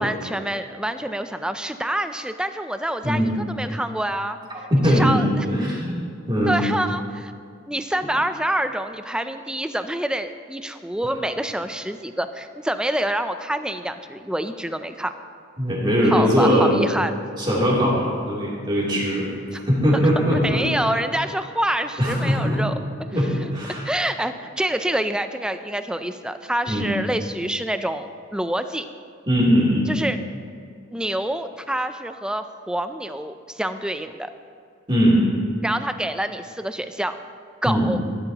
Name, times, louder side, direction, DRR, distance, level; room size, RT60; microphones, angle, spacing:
voice 1, 0.0-5.8 6.5-7.3 7.7-15.1 16.1-17.1 20.3-22.7 23.4-23.5 23.8-28.8 29.9-30.2 30.9-34.3 35.6-37.2 37.6-38.0, right 1 dB, 5° right, 9 dB, 0.4 m, -27 dB
voice 2, 4.7-5.2 5.5-6.0 6.3-6.6 15.6-16.7 17.4-19.3 19.7-20.6 22.0-22.6 23.1-23.9 26.7-26.9 29.3-29.9 34.9-35.2 37.6-37.9, equal, 25° right, -6 dB, 3.1 m, -20 dB
15.0 x 12.0 x 2.9 m, 2.3 s
head